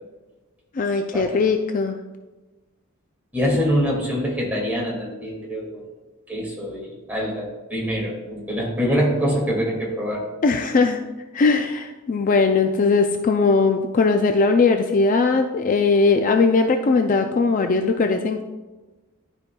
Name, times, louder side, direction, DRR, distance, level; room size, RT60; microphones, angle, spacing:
voice 1, 0.7-2.0 10.4-11.0 11.3-18.4, left 4 dB, 40° left, 6 dB, 0.3 m, -19 dB
voice 2, 3.3-5.8 6.3-10.2, equal, 10° right, -5 dB, 2.1 m, -24 dB
12.0 x 5.2 x 2.3 m, 1.2 s
head